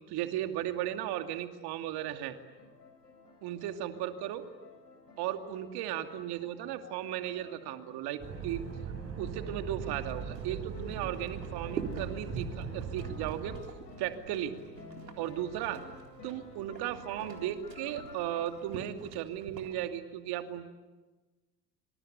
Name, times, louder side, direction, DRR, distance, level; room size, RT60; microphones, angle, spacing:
voice 1, 0.1-2.3 3.4-4.4 5.2-8.6 9.2-13.5 14.0-14.5 15.2-15.8 16.2-20.7, right 12 dB, 50° right, 6 dB, 2.6 m, -36 dB
sound 1, 2.3-18.6, left 4 dB, 85° left, 6.2 m, -52 dB
sound 2, 8.2-13.6, right 6 dB, 30° right, 7.6 m, -40 dB
sound 3, 9.9-19.7, right 6 dB, 80° right, 3.9 m, -47 dB
26.5 x 26.0 x 8.4 m, 1.2 s
figure-of-eight pair, 75°, 49 cm